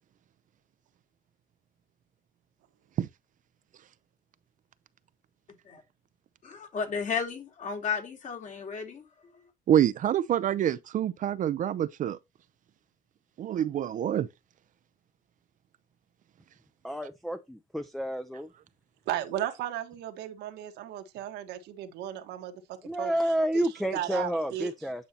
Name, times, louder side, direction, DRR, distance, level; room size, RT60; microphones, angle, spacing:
voice 1, 6.4-9.0, left 6 dB, 50° left, 2.8 m, -33 dB
voice 2, 9.7-12.2 13.4-14.3, right 10 dB, 50° right, 0.6 m, -26 dB
voice 3, 16.8-18.5 22.8-25.1, right 1 dB, ahead, 0.6 m, -30 dB
voice 4, 19.1-22.5 23.0-23.1 23.5-23.7 23.9-24.7, right 12 dB, 85° right, 1.4 m, -35 dB
9.3 x 5.5 x 2.8 m
cardioid pair, 110°, 17 cm